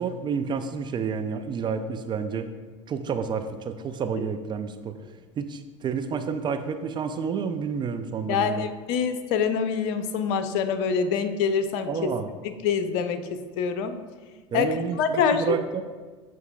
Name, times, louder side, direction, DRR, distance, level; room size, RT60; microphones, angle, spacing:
voice 1, 0.0-2.5 2.9-5.0 5.4-8.7 11.9-12.3 14.5-15.8, right 6 dB, 30° right, 9 dB, 0.5 m, -29 dB
voice 2, 8.3-12.1 12.6-14.0 14.5-15.6, left 6 dB, 60° left, 9 dB, 0.7 m, -25 dB
12.5 x 4.6 x 2.3 m, 1.4 s
hypercardioid pair, 80°, 16 cm